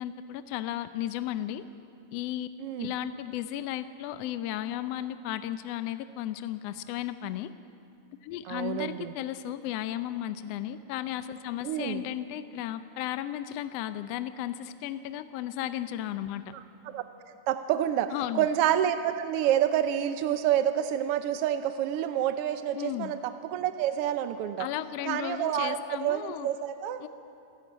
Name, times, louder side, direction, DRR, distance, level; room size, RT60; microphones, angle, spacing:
voice 1, 0.0-1.6 2.1-2.5 2.8-7.5 8.2-16.5 18.1-18.5 22.8-23.1 24.6-26.5 27.0-27.1, left 12 dB, 75° left, 11 dB, 1.6 m, -34 dB
voice 2, 8.5-9.1 11.6-12.0 16.5-17.0 17.5-24.7 25.1-27.0, right 10 dB, 75° right, 9 dB, 1.4 m, -28 dB
27.5 x 11.5 x 8.6 m, 2.6 s
omnidirectional pair, 3.3 m